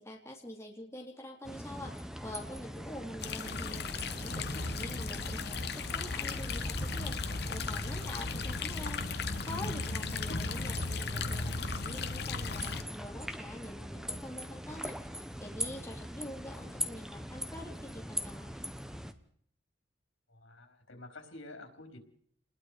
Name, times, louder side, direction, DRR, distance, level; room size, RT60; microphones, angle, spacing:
voice 1, 0.0-3.9 4.2-9.0 9.4-18.5, left 1 dB, 15° left, 0 dB, 3.0 m, -46 dB
sound 1, 1.4-19.1, equal, 5° right, 1.1 m, -42 dB
sound 2, 3.2-12.8, left 3 dB, 55° left, 1.3 m, -36 dB
voice 2, 20.3-22.0, left 2 dB, 90° left, 5 dB, 4.6 m, -49 dB
28.5 x 21.0 x 5.0 m, 0.62 s
head